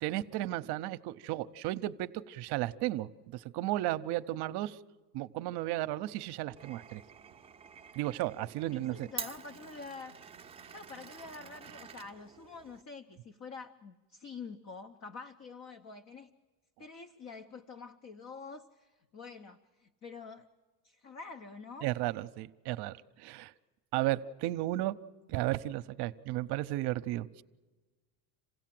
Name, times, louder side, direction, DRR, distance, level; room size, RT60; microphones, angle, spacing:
voice 1, 0.0-4.8 5.1-7.0 8.0-9.1 21.8-23.5 23.9-25.0 25.3-27.4, right 16 dB, 60° right, 14 dB, 0.8 m, -34 dB
Glass, 6.6-12.8, right 6 dB, 15° right, 0.7 m, -48 dB
voice 2, 8.7-10.1 10.7-16.3 16.8-20.5 20.8-21.9, left 4 dB, 35° left, 7 dB, 0.9 m, -47 dB
27.5 x 16.5 x 7.6 m, 1.3 s
cardioid pair, 135°, 46 cm